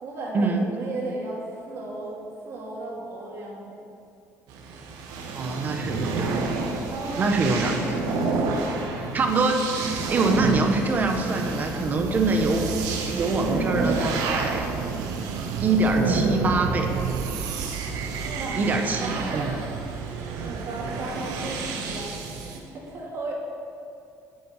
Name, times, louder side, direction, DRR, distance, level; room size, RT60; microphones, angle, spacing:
voice 1, 0.0-2.2 2.4-3.8 6.8-8.5 18.2-18.6 19.0-19.5 20.4-22.1 22.4-23.3, right 2 dB, 50° right, -4 dB, 3.0 m, -35 dB
sound 1, 4.5-22.6, right 3 dB, 90° right, 1.6 m, -30 dB
voice 2, 5.3-6.4 7.2-7.9 9.1-12.7 13.1-14.7 15.6-16.9 18.6-19.5, right 3 dB, 30° right, 4 dB, 1.2 m, -24 dB
sound 2, 9.8-21.0, right 7 dB, 70° right, 0.8 m, -34 dB
8.9 x 8.6 x 8.3 m, 2.5 s
cardioid pair, 160°, 6 cm